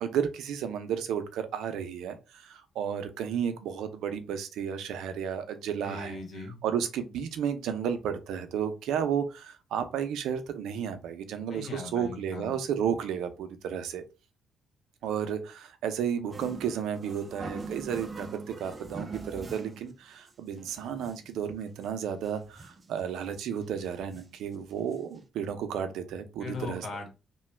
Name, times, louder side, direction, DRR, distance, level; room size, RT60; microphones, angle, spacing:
voice 1, 0.0-6.2 6.6-14.0 15.0-26.8, right 8 dB, 85° right, 0.5 m, -32 dB
voice 2, 5.8-6.6 11.5-12.6 26.4-27.1, left 3 dB, 50° left, 1.3 m, -39 dB
sound 1, 16.3-19.9 20.3-20.4 20.6-21.3 21.8-21.9 22.1-22.9 23.4-23.5 23.8-24.4 24.9-25.0 25.2-25.3, right 4 dB, 30° right, 0.5 m, -42 dB
2.9 x 2.2 x 3.3 m
cardioid pair, 90°, 0 cm